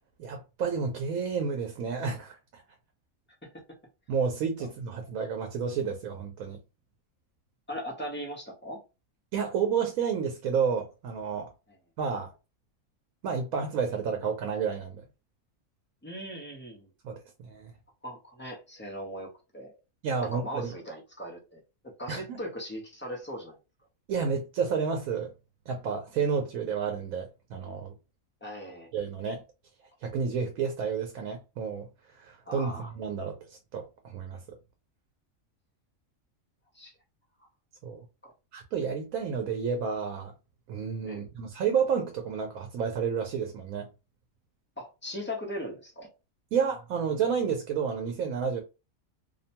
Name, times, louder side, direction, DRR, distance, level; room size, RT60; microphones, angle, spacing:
voice 1, 0.2-2.6 4.1-6.6 9.3-11.5 12.0-12.3 13.2-15.0 17.0-17.7 20.0-20.7 22.1-22.4 24.1-25.3 25.7-27.9 28.9-29.4 30.0-31.9 32.2-34.6 37.8-38.0 38.5-40.3 40.7-43.9 46.5-48.6, right 6 dB, 85° right, 1.0 m, -30 dB
voice 2, 7.7-8.8 16.0-16.9 18.0-19.7 20.2-23.6 28.4-28.9 32.5-32.9 36.7-36.9 38.2-38.3 41.0-41.2 44.8-46.1, equal, 15° left, 0.3 m, -39 dB
2.7 x 2.1 x 2.7 m
omnidirectional pair, 1.4 m